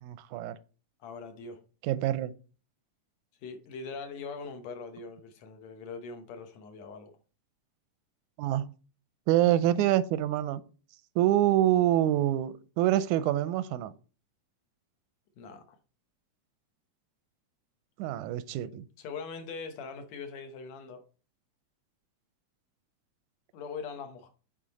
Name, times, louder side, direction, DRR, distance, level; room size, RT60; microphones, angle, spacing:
voice 1, 0.0-0.6 1.8-2.3 8.4-8.7 9.3-10.6 11.2-13.9 18.0-18.8, right 13 dB, 90° right, 2.0 m, -26 dB
voice 2, 1.0-1.6 3.4-7.1 15.4-15.6 19.0-21.0 23.5-24.3, left 5 dB, 70° left, 2.1 m, -41 dB
8.8 x 4.1 x 4.0 m
omnidirectional pair, 3.3 m